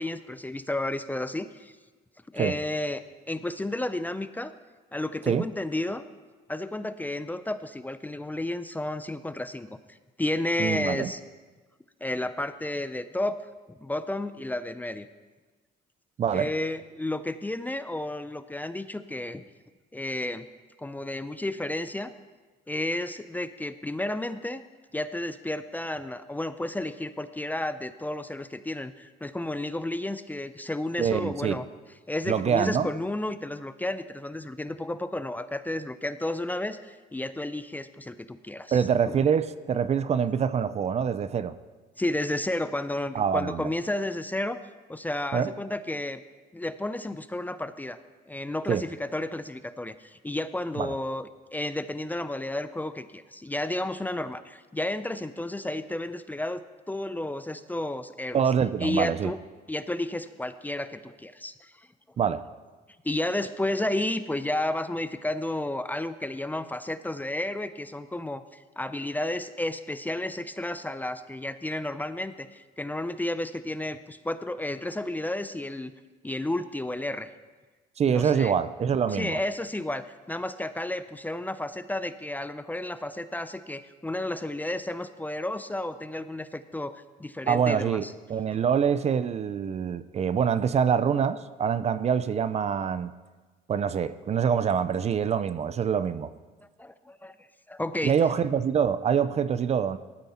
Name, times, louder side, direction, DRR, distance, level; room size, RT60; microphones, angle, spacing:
voice 1, 0.0-1.8 2.3-4.5 4.9-6.0 6.5-11.2 12.0-13.4 13.8-15.1 16.3-19.4 19.9-20.5 20.8-22.1 22.7-24.6 24.9-31.7 32.1-39.2 42.0-44.6 44.9-46.2 46.5-48.0 48.3-58.4 58.8-59.4 59.7-61.9 63.0-75.9 76.2-77.3 78.1-78.6 79.1-88.1 96.8-97.3 97.7-98.2, left 1 dB, 10° left, 12 dB, 0.5 m, -32 dB
voice 2, 10.6-11.1 16.2-16.5 31.0-31.6 32.3-32.9 38.7-41.5 43.1-43.7 45.3-45.5 48.7-48.8 50.8-50.9 58.3-59.3 62.2-62.4 78.0-79.4 87.5-93.1 93.7-96.3 98.0-100.0, right 7 dB, 40° right, 14 dB, 0.6 m, -25 dB
18.0 x 13.0 x 4.3 m, 1.3 s
cardioid pair, 110°, 17 cm